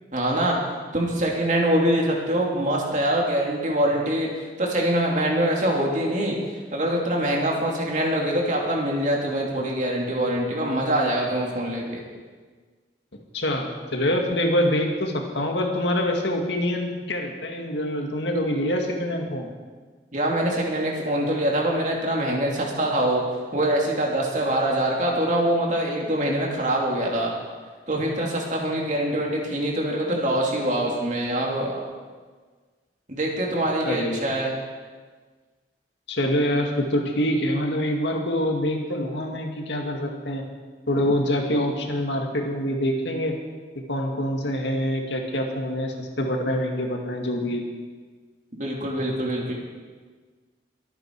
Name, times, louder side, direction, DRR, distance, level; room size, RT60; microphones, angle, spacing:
voice 1, 0.1-0.6 0.9-4.3 4.6-6.3 6.7-12.0 20.1-23.2 23.5-27.3 27.9-31.7 33.1-34.5 48.6-49.5, right 1 dB, 45° right, -1 dB, 2.7 m, -24 dB
voice 2, 13.3-19.5 33.8-34.2 36.1-40.4 40.9-43.3 43.9-47.6, left 1 dB, 80° left, 2 dB, 2.0 m, -25 dB
23.0 x 9.2 x 4.7 m, 1.4 s
head